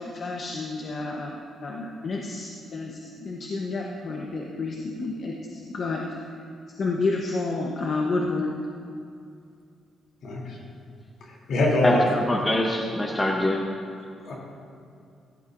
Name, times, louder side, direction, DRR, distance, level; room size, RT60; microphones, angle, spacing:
voice 1, 0.0-1.3 1.6-5.3 5.6-6.0 6.8-8.5, left 3 dB, 45° left, -1 dB, 1.0 m, -30 dB
voice 2, 10.2-10.6 11.5-12.1 14.2-14.3, left 1 dB, 65° left, -3 dB, 3.1 m, -23 dB
voice 3, 11.8-13.6, left 1 dB, 15° left, 0 dB, 0.8 m, -24 dB
16.0 x 11.5 x 2.6 m, 2.4 s
cardioid pair, 160°, 0 cm